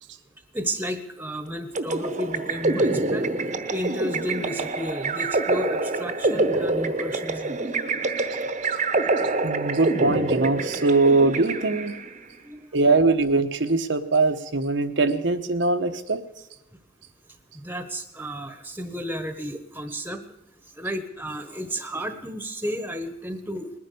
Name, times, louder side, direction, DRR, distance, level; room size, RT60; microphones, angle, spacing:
voice 1, 0.5-3.3 3.7-7.6 12.4-12.6 17.5-20.2 20.8-23.7, equal, 10° right, 8 dB, 1.2 m, -32 dB
sound 1, 1.7-12.2, right 2 dB, 40° right, 1.0 m, -26 dB
voice 2, 9.4-11.9 12.7-16.2, right 3 dB, 80° right, 6 dB, 1.1 m, -21 dB
20.0 x 10.0 x 6.8 m, 0.86 s
head